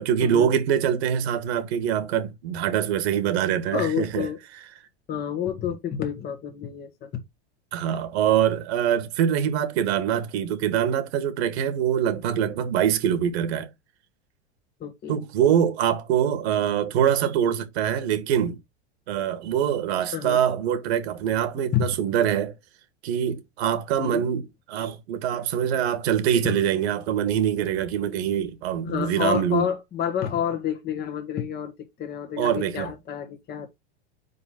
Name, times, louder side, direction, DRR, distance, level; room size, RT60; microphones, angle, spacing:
voice 1, 0.0-4.3 7.7-13.7 15.1-18.6 19.1-22.5 23.0-29.6 32.4-32.9, right 9 dB, 65° right, 1.6 m, -24 dB
voice 2, 3.7-4.4 5.1-7.1 14.8-15.2 20.1-20.4 21.7-21.8 24.0-24.2 25.3-25.4 26.4-26.6 28.8-31.7 32.0-33.7, left 9 dB, 30° left, 1.2 m, -29 dB
4.8 x 4.0 x 5.8 m
hypercardioid pair, 115°, 34 cm